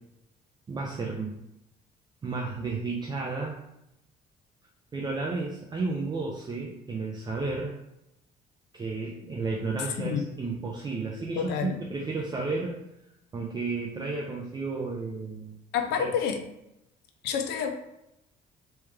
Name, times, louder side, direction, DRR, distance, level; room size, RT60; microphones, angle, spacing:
voice 1, 0.7-1.3 2.2-3.6 4.9-7.7 8.7-12.8 13.3-15.6 16.0-16.1, right 3 dB, 25° right, -1 dB, 0.6 m, -32 dB
voice 2, 10.0-10.3 11.4-11.8 15.7-16.4 17.2-17.7, left 7 dB, 80° left, 5 dB, 0.5 m, -28 dB
3.2 x 3.0 x 3.5 m, 0.85 s
cardioid pair, 110°, 17 cm